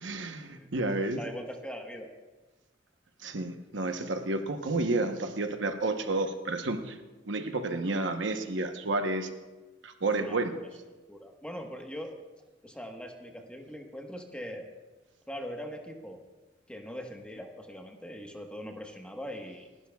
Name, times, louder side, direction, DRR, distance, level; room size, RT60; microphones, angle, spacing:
voice 1, 0.0-1.2 3.2-7.0 7.3-9.3 9.8-10.5, right 2 dB, 70° right, 6 dB, 1.0 m, -30 dB
voice 2, 1.1-2.1 10.2-10.7 11.1-12.2 12.6-14.7 15.3-16.2 16.7-19.7, equal, 5° left, 2 dB, 1.2 m, -41 dB
29.0 x 12.0 x 2.3 m, 1.2 s
head